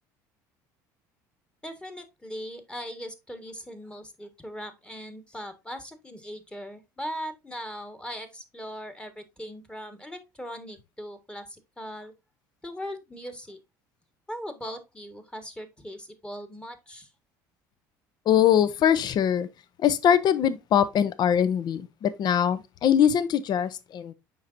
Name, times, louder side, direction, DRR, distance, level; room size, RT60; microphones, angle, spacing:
voice 1, 1.6-12.1 12.6-13.6 14.3-17.1, equal, 10° left, 1.5 m, -39 dB
voice 2, 18.3-19.5 19.8-24.1, left 9 dB, 50° left, 0.6 m, -22 dB
7.1 x 5.4 x 2.5 m
hypercardioid pair, 75°, 9 cm